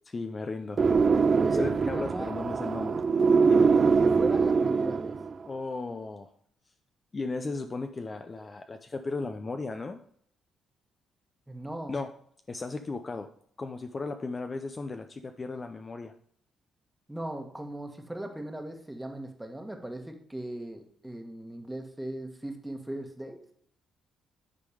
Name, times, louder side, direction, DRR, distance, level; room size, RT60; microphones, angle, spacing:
voice 1, 0.1-0.8 1.5-3.0 3.4-3.7 5.5-6.3 7.1-10.0 11.9-12.1 12.5-13.3 13.6-16.1, left 3 dB, 30° left, 7 dB, 0.5 m, -35 dB
sound 1, 0.8-5.4, right 5 dB, 40° right, 0.3 m, -23 dB
voice 2, 1.4-2.3 3.7-5.2 11.5-12.0 17.1-23.4, right 1 dB, 5° right, 4 dB, 1.4 m, -38 dB
10.0 x 3.7 x 4.9 m, 0.65 s
cardioid pair, 90°, 0 cm